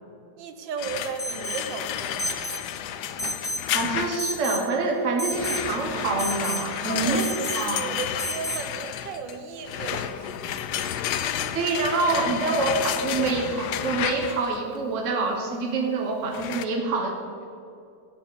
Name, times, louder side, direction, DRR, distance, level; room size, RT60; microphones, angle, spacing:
voice 1, 0.4-2.4 6.9-11.7 12.2-12.3 13.3-13.4, right 5 dB, 90° right, 7 dB, 1.7 m, -36 dB
sound 1, 0.8-4.4 5.3-14.6 16.3-16.6, left 10 dB, 70° left, 1.1 m, -31 dB
Alarm, 1.2-1.7 2.2-2.6 3.2-3.7 4.2-4.7 5.2-5.7 6.2-6.6 7.2-7.6 8.2-8.6, equal, 15° left, 0.5 m, -31 dB
voice 2, 3.7-7.2 7.6-7.8 11.5-17.2, right 3 dB, 45° right, 2 dB, 1.6 m, -26 dB
14.0 x 7.2 x 7.0 m, 2.5 s
omnidirectional pair, 1.9 m